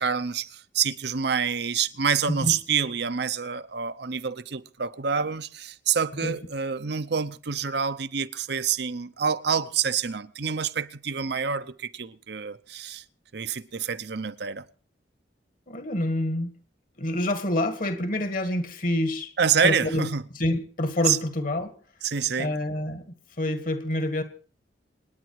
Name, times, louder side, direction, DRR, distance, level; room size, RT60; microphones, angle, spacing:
voice 1, 0.0-13.0 13.3-14.7 19.4-20.3 21.1-21.2 22.0-22.5, right 6 dB, 60° right, 0.8 m, -27 dB
voice 2, 15.7-16.5 17.0-19.3 19.6-21.8 22.4-23.1 23.4-24.2, left 1 dB, 45° left, 1.8 m, -27 dB
27.0 x 9.6 x 4.7 m
head